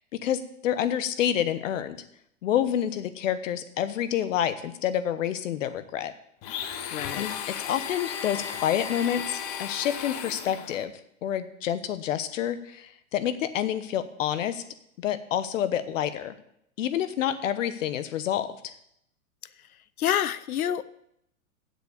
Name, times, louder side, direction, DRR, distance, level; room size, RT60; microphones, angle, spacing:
voice 1, 0.0-2.0 2.4-6.1 7.2-10.9 11.2-14.6 15.0-16.3 16.8-18.7, left 10 dB, 60° left, 12 dB, 1.1 m, -28 dB
Domestic sounds home sounds, 6.4-10.9, left 8 dB, 20° left, 0.4 m, -35 dB
voice 2, 6.9-7.3 19.6-19.7 20.0-20.8, left 10 dB, 85° left, 17 dB, 0.6 m, -27 dB
7.7 x 7.1 x 8.4 m, 0.75 s
hypercardioid pair, 125°, 42 cm